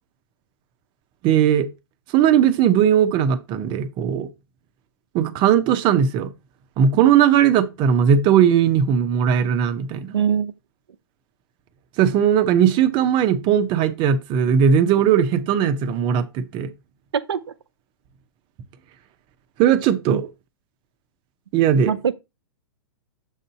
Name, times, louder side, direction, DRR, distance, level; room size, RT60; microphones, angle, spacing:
voice 1, 1.2-1.7 2.1-4.3 5.1-6.3 6.8-10.1 12.0-16.7 19.6-20.3 21.5-21.9, right 8 dB, 35° right, 0.8 m, -18 dB
voice 2, 10.1-10.5 17.1-17.4 20.1-20.2 21.8-22.1, right 8 dB, 80° right, 0.6 m, -22 dB
7.2 x 2.6 x 5.7 m
hypercardioid pair, 110°, 13 cm